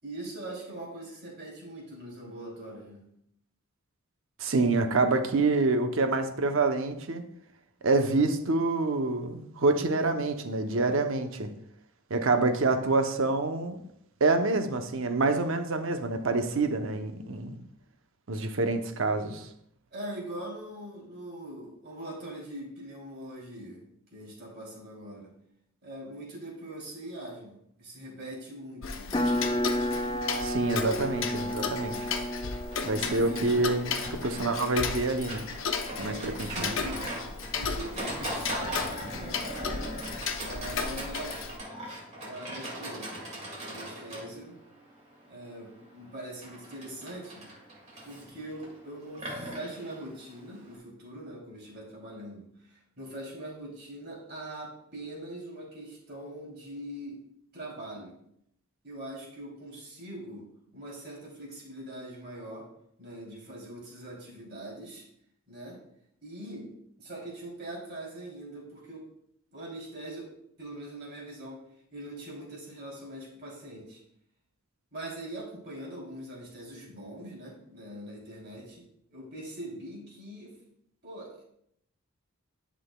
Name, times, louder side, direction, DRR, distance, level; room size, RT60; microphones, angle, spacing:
voice 1, 0.0-3.0 19.9-23.8 24.1-25.3 25.8-29.2 32.9-33.5 35.9-37.2 37.6-39.6 40.4-41.4 42.3-43.2 43.6-44.6 45.3-47.5 48.0-57.2 57.5-58.2 58.8-62.7 63.0-65.0 65.5-65.8 66.2-69.1 69.5-70.3 70.6-74.0 74.9-78.8 79.1-80.6 81.0-81.4, right 1 dB, 50° right, -3 dB, 3.0 m, -42 dB
voice 2, 4.4-7.2 7.8-11.5 12.1-13.8 14.2-17.6 18.3-19.5 30.4-32.1 32.8-35.5 36.0-36.1 36.4-36.7, right 3 dB, 65° right, 7 dB, 0.7 m, -27 dB
Tick-tock, 28.8-41.6, left 5 dB, 65° left, 0.7 m, -35 dB
sound 1, 29.1-35.3, left 1 dB, 20° left, 0.4 m, -32 dB
Livestock farm animals working animals, 32.7-50.8, right 1 dB, 30° right, 2.0 m, -40 dB
11.0 x 6.1 x 2.2 m, 0.73 s
head